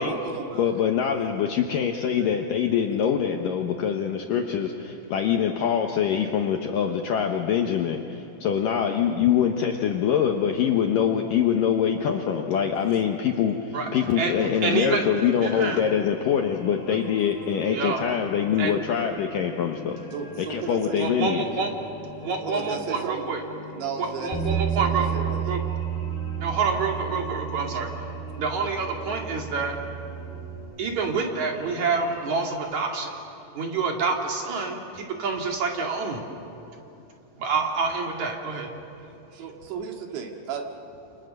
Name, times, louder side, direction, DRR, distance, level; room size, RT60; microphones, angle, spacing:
voice 1, 0.1-0.7 12.8-12.9 16.9-17.0 20.1-21.0 22.4-23.4 23.7-25.5 39.3-40.6, right 6 dB, 75° right, 3 dB, 4.2 m, -35 dB
voice 2, 0.6-20.0 20.5-21.4, left 8 dB, 75° left, 3 dB, 2.1 m, -24 dB
voice 3, 13.7-15.0 15.4-15.8 17.7-18.0 18.6-18.7 20.9-21.7 22.2-23.4 24.0-25.1 25.5-25.6 26.4-27.9 28.4-29.8 30.8-33.1 33.5-36.2 37.4-38.7, right 4 dB, 45° right, 1 dB, 3.2 m, -27 dB
sound 1, 14.6-32.6, left 3 dB, 40° left, 3.5 m, -43 dB
Bass guitar, 24.3-30.6, right 8 dB, 10° left, 7.4 m, -31 dB
28.5 x 27.5 x 6.6 m, 3.0 s
omnidirectional pair, 5.2 m